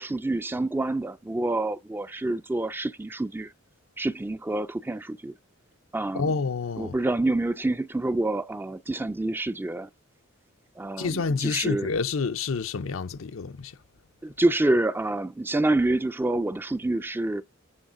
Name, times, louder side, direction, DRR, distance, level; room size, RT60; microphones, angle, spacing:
voice 1, 0.0-3.5 4.0-5.3 5.9-6.3 6.8-9.9 10.8-11.9 14.2-17.4, right 2 dB, 10° right, 0.4 m, -27 dB
voice 2, 6.1-7.0 11.0-13.7, left 4 dB, 75° left, 0.6 m, -28 dB
9.8 x 3.9 x 2.6 m
head